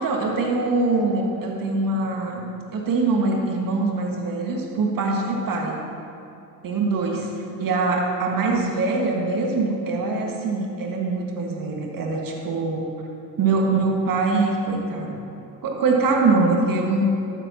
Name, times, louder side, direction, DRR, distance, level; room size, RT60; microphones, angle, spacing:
voice 1, 0.0-5.8 6.6-7.3 7.6-12.9 13.4-15.2 15.6-17.0, right 3 dB, 40° right, 0 dB, 2.0 m, -23 dB
13.0 x 9.1 x 3.0 m, 2.6 s
hypercardioid pair, 60°, 49 cm